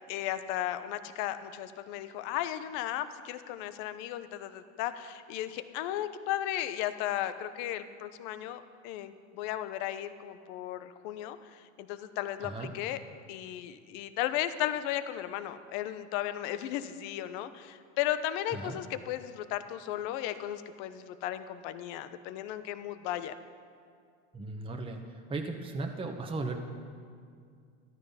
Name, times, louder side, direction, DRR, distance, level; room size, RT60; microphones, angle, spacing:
voice 1, 0.1-13.0 13.3-23.3, left 12 dB, 65° left, 11 dB, 1.0 m, -35 dB
voice 2, 12.4-12.8 18.5-18.8 24.3-26.6, right 3 dB, 15° right, 3 dB, 1.1 m, -37 dB
13.5 x 12.5 x 5.6 m, 2.2 s
supercardioid pair, 105°, 38 cm